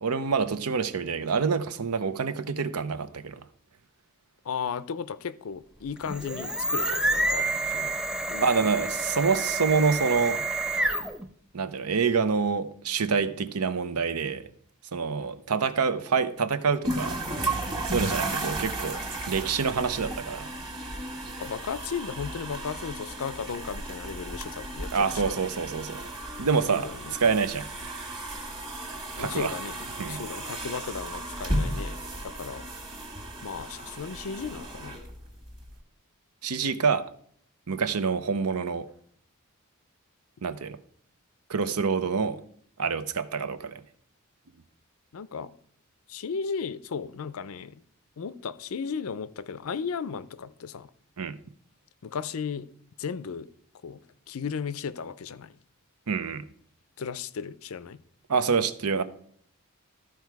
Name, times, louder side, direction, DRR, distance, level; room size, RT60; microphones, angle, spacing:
voice 1, 0.0-3.4 8.4-10.4 11.5-14.4 14.9-17.2 17.8-19.0 19.3-20.5 24.9-26.0 26.4-26.9 27.2-27.7 29.2-29.5 30.0-30.2 36.4-37.0 37.7-38.9 40.4-40.8 41.5-42.4 42.8-43.8 51.2-51.4 56.1-56.4 58.3-59.0, right 5 dB, 85° right, 0.7 m, -26 dB
voice 2, 4.4-8.0 8.3-8.8 21.4-25.4 26.7-27.1 29.2-32.7 33.4-35.0 45.1-45.5 46.1-47.8 48.2-50.9 52.0-52.7 53.0-53.5 53.8-54.0 54.3-55.5 57.0-58.0, left 6 dB, 70° left, 0.5 m, -35 dB
sound 1, 6.0-11.3, right 2 dB, 5° right, 0.4 m, -28 dB
sound 2, 16.8-35.7, right 1 dB, 20° right, 1.5 m, -34 dB
13.5 x 4.7 x 4.7 m
head